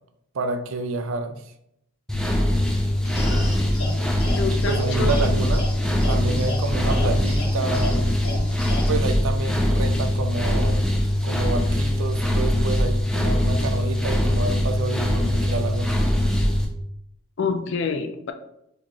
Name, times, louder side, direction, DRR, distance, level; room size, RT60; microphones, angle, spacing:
voice 1, 0.3-1.4 4.5-5.7 6.1-8.0 8.9-10.8 11.2-15.9, right 3 dB, 65° right, 7 dB, 0.5 m, -29 dB
sound 1, 2.1-16.6, left 1 dB, 5° left, 0.5 m, -22 dB
sound 2, 3.0-9.0, left 1 dB, 85° left, 1.2 m, -33 dB
voice 2, 4.3-5.3 17.4-18.3, left 4 dB, 55° left, 7 dB, 0.4 m, -27 dB
4.2 x 3.1 x 2.9 m, 0.79 s
head